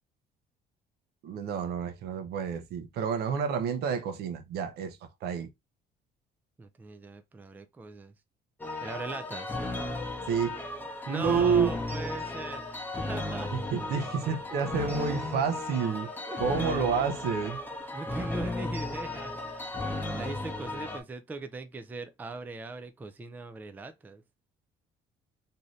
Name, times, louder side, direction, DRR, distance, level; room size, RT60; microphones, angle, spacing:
voice 1, 1.2-5.5 10.3-10.6 11.1-11.7 13.5-16.1 16.4-17.6, right 6 dB, 70° right, 0.6 m, -29 dB
voice 2, 6.6-8.1 8.8-9.6 11.1-12.6 12.9-13.5 16.3-17.1 17.9-19.3 19.8-24.2, right 3 dB, 10° right, 0.3 m, -40 dB
sound 1, 8.6-21.0, left 2 dB, 10° left, 0.8 m, -35 dB
2.7 x 2.5 x 3.0 m
cardioid pair, 110°, 17 cm